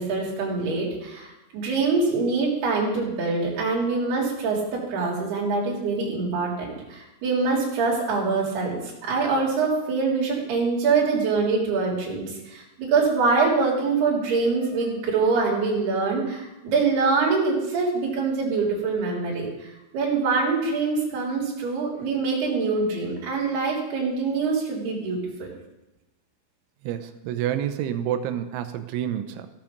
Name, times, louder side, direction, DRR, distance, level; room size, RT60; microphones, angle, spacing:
voice 1, 0.0-25.5, right 4 dB, 60° right, -3 dB, 5.1 m, -24 dB
voice 2, 26.8-29.5, right 10 dB, 85° right, 9 dB, 3.2 m, -28 dB
15.0 x 8.8 x 6.6 m, 0.97 s
omnidirectional pair, 5.5 m